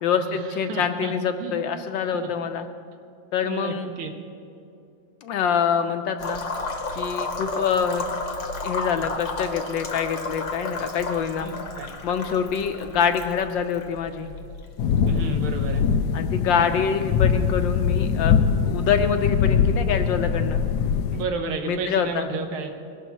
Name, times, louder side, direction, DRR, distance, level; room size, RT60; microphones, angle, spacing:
voice 1, 0.0-2.7 3.3-3.9 5.2-6.4 7.0-8.0 8.6-11.5 12.0-14.3 16.1-18.4 18.6-20.6 21.6-22.3, left 7 dB, 75° left, 7 dB, 1.2 m, -25 dB
voice 2, 0.7-1.1 1.4-1.5 2.1-2.3 3.4-4.1 11.4-11.9 15.1-15.8 21.1-22.7, right 4 dB, 80° right, 4 dB, 2.0 m, -31 dB
sound 1, 6.2-16.0, left 3 dB, 45° left, 1.0 m, -33 dB
sound 2, 14.8-21.2, left 7 dB, 90° left, 0.9 m, -22 dB
20.5 x 11.5 x 3.0 m, 2.5 s
omnidirectional pair, 2.3 m